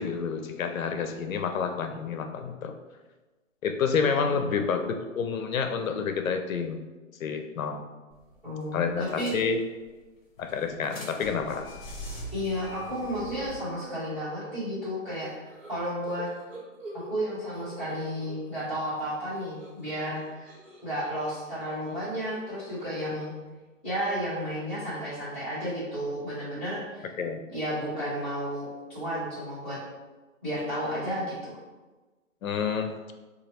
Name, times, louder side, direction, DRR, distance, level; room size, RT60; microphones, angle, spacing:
voice 1, 0.0-2.7 3.6-6.8 7.2-7.8 8.7-9.6 10.4-11.7 27.2-27.4 32.4-32.9, left 6 dB, 80° left, 6 dB, 0.5 m, -29 dB
voice 2, 4.1-4.5 8.4-9.3 12.3-16.3 16.9-20.5 20.8-23.4 23.8-27.1 27.5-29.8 30.4-31.5, equal, 5° left, -17 dB, 1.2 m, -32 dB
sound 1, 8.1-8.3 8.6-8.7 9.1-9.9 10.4-13.5, equal, 45° left, 1.0 m, -42 dB
sound 2, 15.2-18.7 19.0-23.5, right 1 dB, 65° right, 1.3 m, -47 dB
3.0 x 2.4 x 2.8 m, 1.2 s
hypercardioid pair, 160°, 40 cm